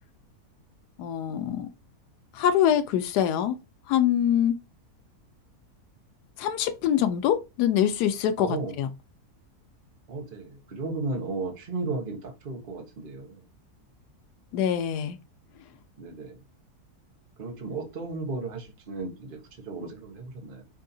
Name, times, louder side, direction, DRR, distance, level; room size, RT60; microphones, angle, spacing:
voice 1, 1.0-1.7 2.3-3.6 3.9-4.5 6.4-8.9 14.5-15.2, left 10 dB, 90° left, 1.1 m, -24 dB
voice 2, 8.4-8.7 10.1-13.4 16.0-16.4 17.4-19.4 19.7-20.6, right 3 dB, 40° right, 1.1 m, -34 dB
5.1 x 2.7 x 2.6 m
omnidirectional pair, 1.7 m